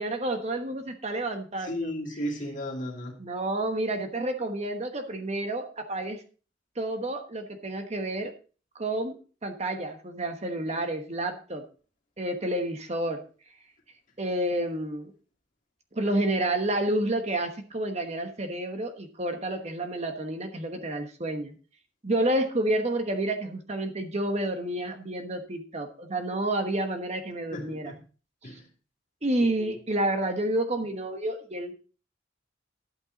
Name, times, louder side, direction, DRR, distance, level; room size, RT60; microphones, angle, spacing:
voice 1, 0.0-2.2 3.2-6.2 6.8-8.3 8.7-11.6 12.2-13.2 14.2-15.1 15.9-21.6 22.0-27.9 29.2-31.7, right 1 dB, 35° right, 1.2 m, -29 dB
voice 2, 1.6-3.2 27.5-28.0 28.4-28.6, equal, 40° left, 2.6 m, -34 dB
11.5 x 8.9 x 4.0 m
head